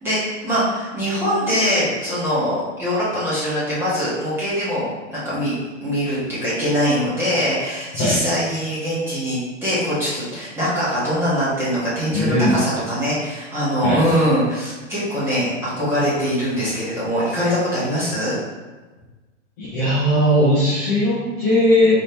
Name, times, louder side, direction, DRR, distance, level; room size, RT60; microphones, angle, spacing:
voice 1, 0.0-5.5 5.8-18.4, equal, 5° right, -10 dB, 1.0 m, -22 dB
voice 2, 12.1-12.6 13.8-14.2 19.6-21.9, left 1 dB, 15° left, -9 dB, 0.4 m, -18 dB
4.1 x 2.8 x 3.3 m, 1.2 s
supercardioid pair, 165°, 38 cm